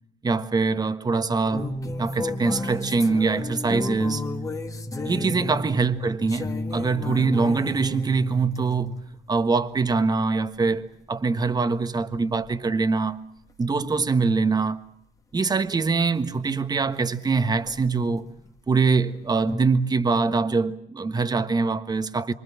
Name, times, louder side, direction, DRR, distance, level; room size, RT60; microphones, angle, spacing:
voice 1, 0.2-4.2 5.0-8.9 9.3-13.2 13.6-14.8 15.3-18.3 18.7-22.3, right 4 dB, 25° right, 1.4 m, -23 dB
sound 1, 1.5-9.2 12.4-12.7 13.1-14.2 16.4-16.5 16.7-17.1 17.7-19.0 19.5-19.9, left 2 dB, 20° left, 1.8 m, -33 dB
26.5 x 24.5 x 7.4 m
cardioid pair, 110°, 17 cm